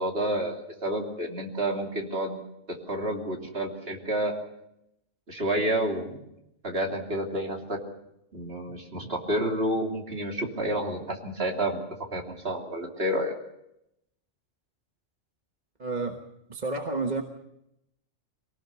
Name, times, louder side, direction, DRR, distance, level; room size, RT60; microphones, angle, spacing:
voice 1, 0.0-2.4 2.9-4.3 5.3-6.2 6.6-7.8 8.3-11.8 12.1-13.3, right 1 dB, 50° right, 1 dB, 3.3 m, -29 dB
voice 2, 15.8-16.2 16.5-17.2, right 3 dB, 35° right, 4 dB, 1.5 m, -30 dB
24.0 x 18.0 x 7.0 m, 0.82 s
omnidirectional pair, 1.3 m